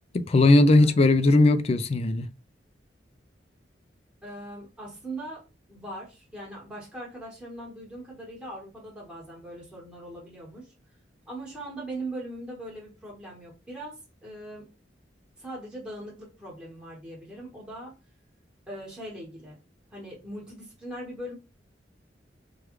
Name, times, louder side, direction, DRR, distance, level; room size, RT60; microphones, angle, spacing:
voice 1, 0.1-2.3, left 2 dB, 35° left, 0.3 m, -19 dB
voice 2, 4.2-5.4 5.7-10.7 11.3-14.7 15.4-17.9 18.7-19.6 19.9-21.3, right 1 dB, 5° right, 1.3 m, -40 dB
3.4 x 2.3 x 3.0 m
head